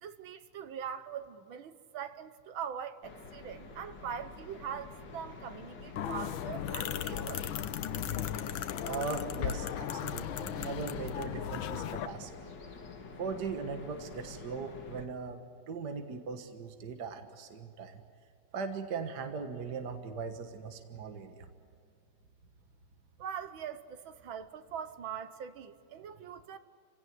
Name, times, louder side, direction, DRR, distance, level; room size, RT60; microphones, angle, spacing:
voice 1, 0.0-7.4 23.2-26.6, right 8 dB, 70° right, 1.8 m, -42 dB
sound 1, 3.0-15.1, left 4 dB, 55° left, 2.4 m, -48 dB
sound 2, 6.0-12.1, left 10 dB, 75° left, 1.6 m, -36 dB
voice 2, 8.8-12.3 13.2-15.4 15.7-18.0 18.5-21.5, right 5 dB, 55° right, 1.9 m, -39 dB
28.0 x 17.0 x 9.5 m
omnidirectional pair, 2.3 m